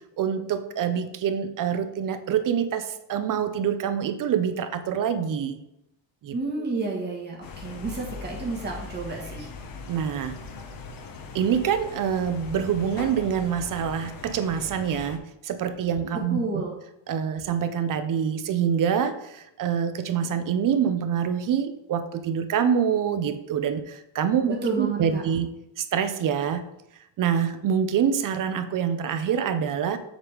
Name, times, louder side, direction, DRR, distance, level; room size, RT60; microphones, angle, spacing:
voice 1, 0.2-5.6 6.2-6.4 9.9-10.3 11.3-16.6 17.1-25.5 25.8-26.6 27.2-30.0, right 8 dB, 50° right, 10 dB, 0.6 m, -26 dB
voice 2, 6.3-9.5 16.3-16.8 24.5-25.2, right 3 dB, 25° right, -2 dB, 1.3 m, -30 dB
sound 1, 7.4-15.2, left 4 dB, 50° left, 0.9 m, -40 dB
7.3 x 3.6 x 4.9 m, 0.84 s
cardioid pair, 170°, 43 cm